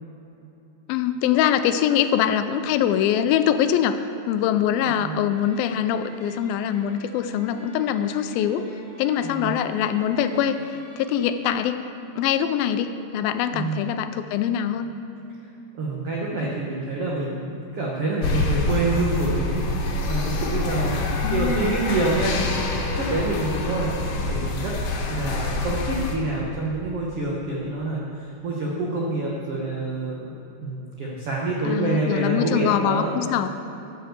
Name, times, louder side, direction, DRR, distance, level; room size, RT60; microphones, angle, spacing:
voice 1, 0.9-4.0 4.3-8.7 9.0-11.8 12.2-14.9 21.2-21.8 31.7-33.5, left 9 dB, 80° left, 10 dB, 2.2 m, -23 dB
voice 2, 4.9-5.2 9.2-9.5 13.5-13.8 15.7-22.3 22.7-24.7 25.1-30.3 30.6-33.1, right 2 dB, 80° right, -4 dB, 1.3 m, -27 dB
sound 1, 5.3-11.5, equal, 40° right, 2.6 m, -46 dB
sound 2, 18.2-26.2, left 2 dB, 65° left, 2.3 m, -26 dB
13.0 x 4.8 x 7.9 m, 2.9 s
omnidirectional pair, 4.4 m